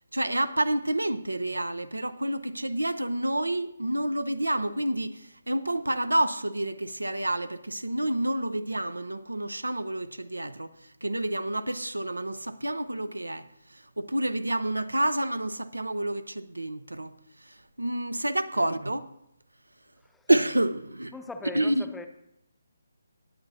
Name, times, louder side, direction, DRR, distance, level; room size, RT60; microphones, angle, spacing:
voice 1, 0.1-10.7 11.0-13.5 14.0-17.1 17.8-19.1 20.3-21.1 21.5-21.8, right 1 dB, 90° right, 0.6 m, -28 dB
voice 2, 21.1-22.1, left 3 dB, 5° left, 0.6 m, -41 dB
18.5 x 8.3 x 2.7 m
figure-of-eight pair, 145°, 0 cm